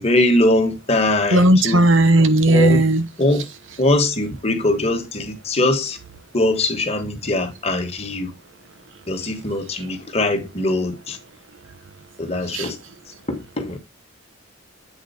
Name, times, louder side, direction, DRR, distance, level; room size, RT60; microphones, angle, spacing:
voice 1, 0.0-1.8 2.5-2.9 3.2-3.4 3.8-6.0 6.3-8.3 9.1-11.2 12.2-12.8 13.3-13.8, left 2 dB, 30° left, 1.4 m, -21 dB
voice 2, 1.3-3.0 12.5-12.7, right 1 dB, 80° right, 1.1 m, -15 dB
8.3 x 4.3 x 4.2 m
head